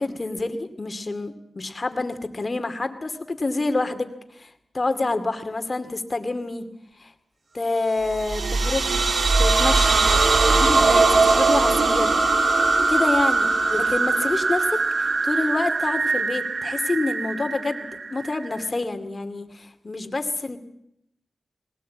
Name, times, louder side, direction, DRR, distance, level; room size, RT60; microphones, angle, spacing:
voice 1, 0.0-6.6 7.0-7.1 7.5-9.0 9.4-10.1 10.5-12.2 12.9-20.6, left 2 dB, 40° left, 9 dB, 2.5 m, -27 dB
sound 1, 8.1-18.7, right 3 dB, 65° right, 1.9 m, -21 dB
20.0 x 19.0 x 8.6 m, 0.78 s
cardioid pair, 55°, 0 cm